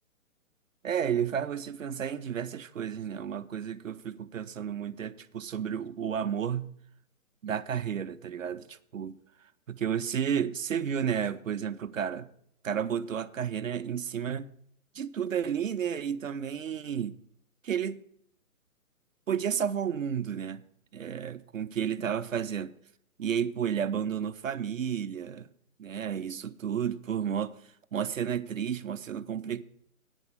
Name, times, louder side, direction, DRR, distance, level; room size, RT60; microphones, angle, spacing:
voice 1, 0.8-6.7 7.4-9.2 9.7-12.3 12.6-14.5 14.9-17.2 17.6-18.0 19.3-20.6 20.9-22.7 23.2-25.5 25.8-27.5 27.9-29.6, right 8 dB, 65° right, 0.6 m, -32 dB
9.0 x 6.1 x 7.2 m
figure-of-eight pair, 140°, 42 cm